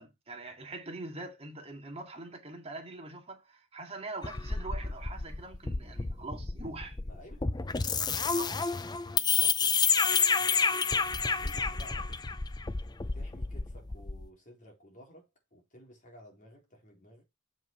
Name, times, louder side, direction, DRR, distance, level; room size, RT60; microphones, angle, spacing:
voice 1, 0.0-7.0 8.4-8.5, right 2 dB, 30° right, 2.2 m, -43 dB
sound 1, 4.2-14.3, left 5 dB, 20° left, 0.5 m, -30 dB
voice 2, 7.0-12.3 12.7-17.2, equal, 40° left, 4.0 m, -55 dB
7.4 x 5.5 x 4.6 m
head